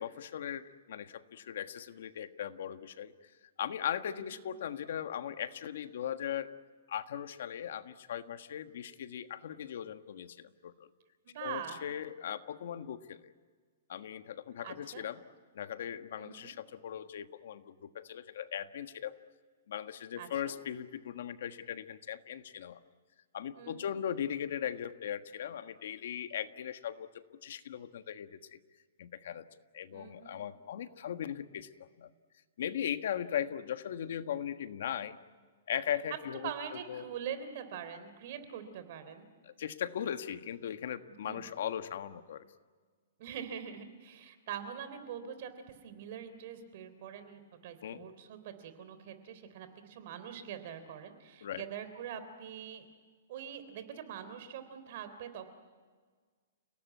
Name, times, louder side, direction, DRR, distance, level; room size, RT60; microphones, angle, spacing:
voice 1, 0.0-3.3 3.6-6.5 6.9-10.7 11.4-13.3 13.9-15.2 15.5-19.2 19.7-22.8 23.3-27.1 27.4-28.6 29.0-29.5 29.7-31.7 32.0-32.1 32.6-35.2 35.7-36.5 36.9-37.0 39.4-42.4 47.8-48.0 51.4-51.6, left 9 dB, 60° left, 9 dB, 1.4 m, -38 dB
voice 2, 4.1-4.4 11.2-11.8 14.6-15.1 16.2-16.5 20.2-20.5 23.6-23.9 29.9-30.4 36.4-39.3 41.3-41.4 43.2-45.5 45.8-52.9 53.3-55.5, right 8 dB, 45° right, 10 dB, 3.5 m, -44 dB
30.0 x 18.0 x 9.4 m, 1.5 s
hypercardioid pair, 165°, 0 cm